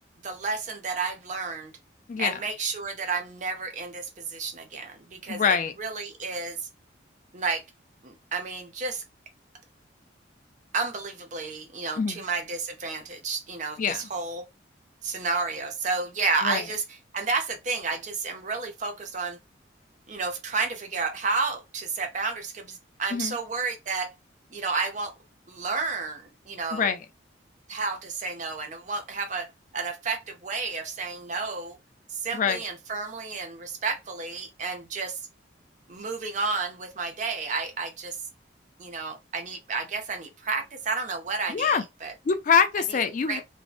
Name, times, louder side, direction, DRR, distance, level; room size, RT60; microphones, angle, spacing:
voice 1, 0.2-1.7 2.2-6.6 7.3-7.6 8.0-9.0 10.7-14.4 15.0-16.8 17.1-19.4 20.1-24.1 24.5-25.1 25.5-26.9 27.7-29.5 29.7-31.8 32.1-35.2 35.9-38.1 38.8-42.1 43.3-43.4, right 4 dB, 40° right, 0.5 m, -31 dB
voice 2, 2.1-2.4 5.3-5.7 12.0-12.2 13.8-14.0 16.4-16.6 23.1-23.4 26.7-27.0 32.3-32.6 41.5-41.8 42.3-43.4, left 6 dB, 45° left, 0.3 m, -24 dB
2.6 x 2.1 x 2.3 m
head